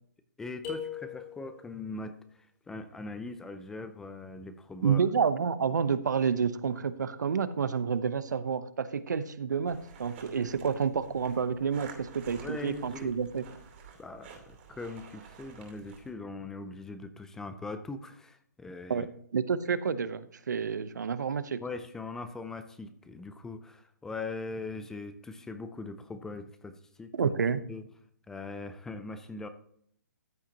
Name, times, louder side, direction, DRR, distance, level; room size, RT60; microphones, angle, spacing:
voice 1, 0.4-5.0 12.4-13.1 14.0-19.1 21.6-27.3 27.7-27.8 28.3-29.5, left 3 dB, 5° left, 10 dB, 0.4 m, -41 dB
sound 1, 0.6-1.8, left 8 dB, 30° left, 4.1 m, -39 dB
voice 2, 4.8-13.4 18.9-21.6 27.2-27.6, right 6 dB, 75° right, 14 dB, 0.8 m, -29 dB
sound 2, 9.7-16.1, right 6 dB, 40° right, 2.7 m, -51 dB
14.0 x 8.1 x 2.9 m, 0.65 s
hypercardioid pair, 155°, 10 cm